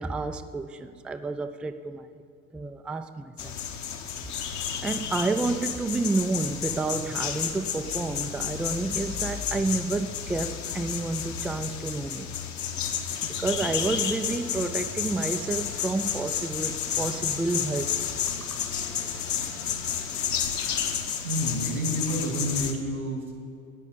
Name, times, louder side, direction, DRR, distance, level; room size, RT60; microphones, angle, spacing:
voice 1, 0.0-2.2 2.5-3.6 4.3-12.3 13.2-17.9, right 3 dB, 5° right, 9 dB, 0.4 m, -30 dB
sound 1, 3.4-22.7, left 8 dB, 45° left, 1.4 m, -31 dB
sound 2, 13.4-20.3, left 1 dB, 90° left, 1.8 m, -47 dB
voice 2, 21.2-23.3, equal, 90° right, 2 dB, 2.4 m, -30 dB
10.5 x 8.3 x 8.3 m, 2.3 s
figure-of-eight pair, 70°, 41 cm